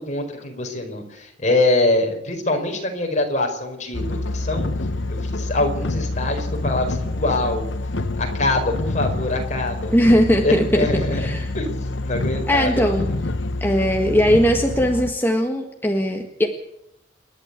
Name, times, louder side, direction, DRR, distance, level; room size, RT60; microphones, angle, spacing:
voice 1, 0.0-4.7 5.1-7.6 8.2-9.9 10.4-13.2, left 2 dB, 40° left, 3 dB, 4.8 m, -24 dB
sound 1, 3.9-15.1, left 2 dB, 80° left, 1.2 m, -27 dB
voice 2, 9.9-11.5 12.5-13.1 13.6-16.5, equal, 10° left, 3 dB, 1.6 m, -19 dB
28.0 x 11.5 x 8.3 m, 0.83 s
head